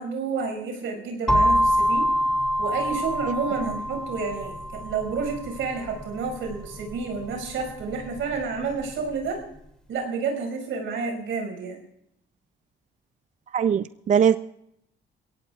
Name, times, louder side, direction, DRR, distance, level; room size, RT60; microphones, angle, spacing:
voice 1, 0.0-2.0 2.6-9.4 9.9-11.8, right 4 dB, 80° right, 2 dB, 5.6 m, -30 dB
sound 1, 1.3-9.1, equal, 5° left, 2.7 m, -26 dB
voice 2, 13.5-14.4, right 8 dB, 40° right, 13 dB, 0.4 m, -20 dB
22.5 x 17.0 x 2.4 m, 0.75 s
cardioid pair, 90°, 20 cm